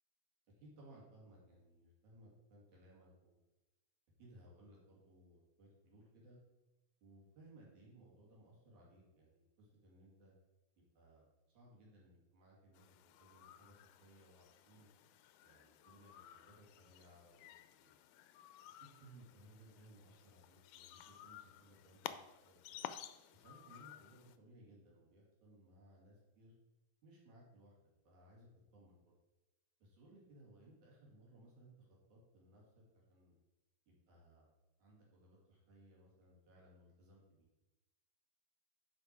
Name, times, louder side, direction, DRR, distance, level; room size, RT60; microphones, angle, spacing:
voice 1, 0.6-3.4 4.2-6.4 7.0-10.3 10.8-11.3 11.5-14.9 15.4-17.9 18.8-22.8 23.3-26.5 27.0-27.7 28.1-29.1 29.8-33.4 33.9-34.4 34.8-37.5, right 1 dB, 75° right, -4 dB, 3.9 m, -63 dB
sound 1, 12.7-24.4, left 12 dB, 90° left, 2.0 m, -54 dB
10.5 x 5.2 x 4.6 m, 1.0 s
omnidirectional pair, 3.4 m